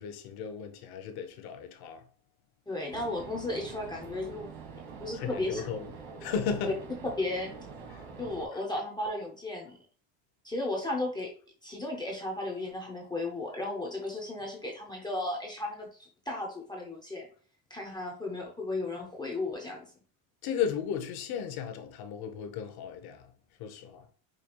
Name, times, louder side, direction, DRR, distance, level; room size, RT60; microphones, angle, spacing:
voice 1, 0.0-2.0 5.1-5.9 6.2-6.8 7.9-8.0 8.5-8.6 20.4-23.2 23.6-24.0, left 7 dB, 50° left, 0.8 m, -35 dB
voice 2, 2.7-4.5 5.0-5.6 6.6-6.7 7.2-7.6 8.2-9.7 10.4-11.3 11.6-17.3 17.7-19.9, left 2 dB, 10° left, 0.4 m, -34 dB
sound 1, 2.9-8.5, right 5 dB, 70° right, 1.6 m, -45 dB
5.1 x 2.3 x 2.9 m
cardioid pair, 145°, 47 cm